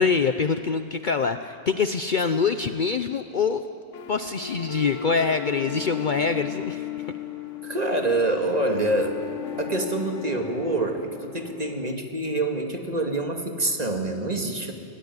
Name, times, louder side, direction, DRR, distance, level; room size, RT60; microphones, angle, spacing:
voice 1, 0.0-3.6 4.1-7.2, left 5 dB, 50° left, 9 dB, 0.8 m, -25 dB
sound 1, 3.9-11.9, left 10 dB, 90° left, 1.5 m, -36 dB
voice 2, 7.6-9.2 9.6-14.7, right 2 dB, 35° right, 3 dB, 2.3 m, -26 dB
22.0 x 17.5 x 9.7 m, 2.5 s
omnidirectional pair, 1.2 m